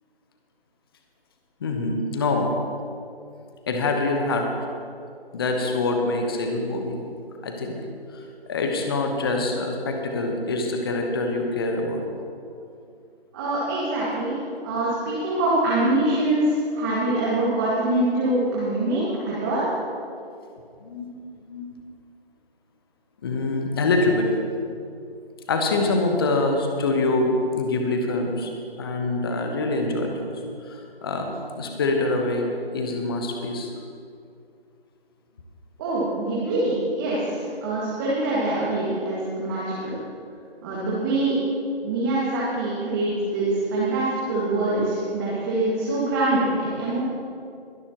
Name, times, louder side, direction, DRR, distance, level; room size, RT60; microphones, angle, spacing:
voice 1, 1.6-2.5 3.7-4.5 5.3-7.0 7.4-7.8 8.1-12.0 20.8-21.1 21.5-21.7 23.2-24.3 25.5-28.5 28.8-30.4 30.7-33.7, left 2 dB, 25° left, 3 dB, 1.0 m, -25 dB
voice 2, 13.3-14.4 14.6-19.6 35.8-40.0 40.6-41.4 41.8-47.0, right 2 dB, 20° right, -8 dB, 2.0 m, -24 dB
22.5 x 11.5 x 3.0 m, 2.5 s
figure-of-eight pair, 155°, 31 cm